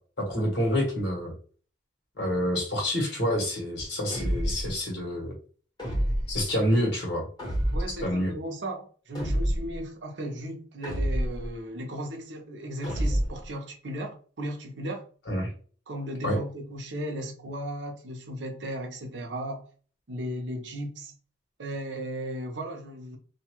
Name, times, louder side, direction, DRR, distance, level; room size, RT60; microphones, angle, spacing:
voice 1, 0.2-1.3 2.2-5.3 6.3-7.3 8.0-8.3 15.3-15.5 16.2-16.4, equal, 65° left, 1.3 m, -27 dB
sound 1, 4.1-4.8 5.8-6.4 7.4-8.1 9.1-9.8 10.8-11.5 12.8-13.5, equal, 25° left, 1.4 m, -28 dB
voice 2, 7.7-15.0 15.9-19.6 20.1-21.1 21.6-23.2, right 1 dB, 85° right, 0.7 m, -36 dB
2.7 x 2.2 x 2.9 m
head